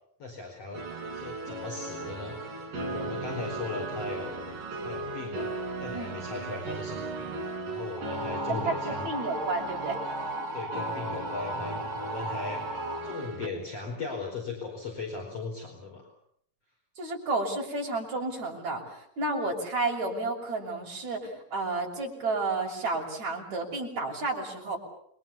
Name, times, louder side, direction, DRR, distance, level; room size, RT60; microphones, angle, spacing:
voice 1, 0.2-0.9 1.1-4.4 4.8-5.5 5.8-9.1 10.5-12.7 13.0-16.1, left 3 dB, 45° left, 0 dB, 5.7 m, -38 dB
sound 1, 0.7-13.5, right 2 dB, 85° right, 5.8 m, -37 dB
sound 2, 8.0-13.0, right 1 dB, 5° left, 6.2 m, -36 dB
voice 2, 8.5-10.0 17.0-24.8, right 3 dB, 55° right, -1 dB, 7.7 m, -31 dB
28.0 x 23.5 x 7.2 m, 0.68 s
omnidirectional pair, 3.7 m